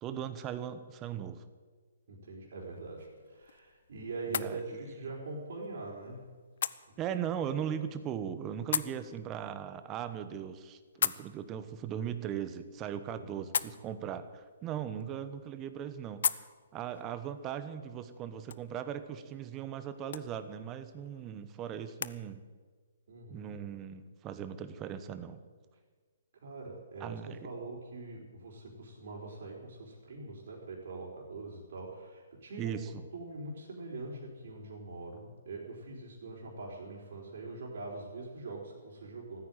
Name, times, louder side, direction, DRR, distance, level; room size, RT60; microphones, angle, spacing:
voice 1, 0.0-1.4 4.3-4.6 7.0-16.4 16.7-22.4 23.3-25.4 27.0-27.5 32.6-33.0, right 9 dB, 25° right, 11 dB, 1.1 m, -38 dB
voice 2, 2.1-6.2 13.1-13.5 23.1-23.5 26.4-32.8 33.1-39.4, right 3 dB, 65° right, -2 dB, 4.2 m, -43 dB
sound 1, 2.7-22.2, left 7 dB, 65° left, 0.6 m, -41 dB
14.5 x 9.6 x 9.2 m, 1.5 s
hypercardioid pair, 140°, 0 cm